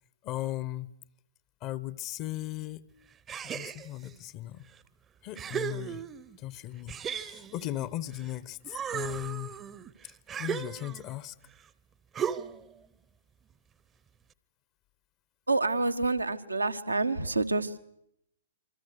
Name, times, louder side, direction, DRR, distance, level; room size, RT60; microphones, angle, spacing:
voice 1, 0.2-0.9 1.6-2.9 3.4-4.7 5.2-6.0 6.4-9.6 10.0-11.4, left 14 dB, 30° left, 18 dB, 0.9 m, -37 dB
sound 1, 3.3-4.1 4.8-4.9 5.3-6.4 6.9-8.3 8.6-11.2 12.1-12.7, right 8 dB, 20° right, 0.9 m, -36 dB
voice 2, 15.5-17.8, right 3 dB, 85° right, 9 dB, 1.4 m, -28 dB
27.0 x 24.5 x 6.7 m, 0.76 s
figure-of-eight pair, 115°, 0 cm